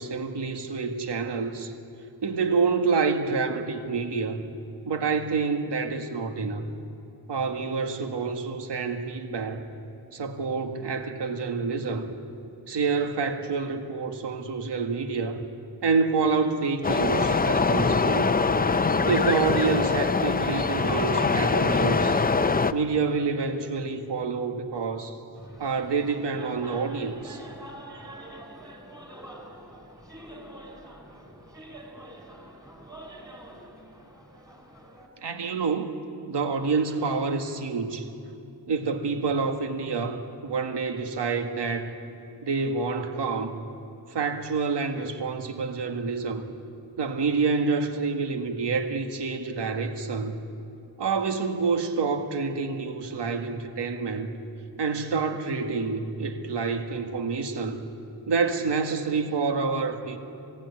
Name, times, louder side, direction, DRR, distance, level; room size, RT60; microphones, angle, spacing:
voice 1, 0.0-1.7 2.2-4.4 4.9-6.7 7.3-9.6 10.1-12.1 12.7-15.4 15.8-18.3 19.1-22.2 22.7-25.2 25.6-27.4 35.2-38.1 38.7-42.0 42.4-43.6 44.1-46.4 47.0-50.4 51.0-54.3 54.8-57.9 58.3-60.2, right 4 dB, 75° right, 6 dB, 1.9 m, -28 dB
sound 1, 16.8-22.7, left 4 dB, 20° left, 0.6 m, -23 dB
sound 2, 25.3-35.1, right 1 dB, 10° right, 3.4 m, -45 dB
27.5 x 18.5 x 9.7 m, 2.7 s
wide cardioid pair, 165°, 42 cm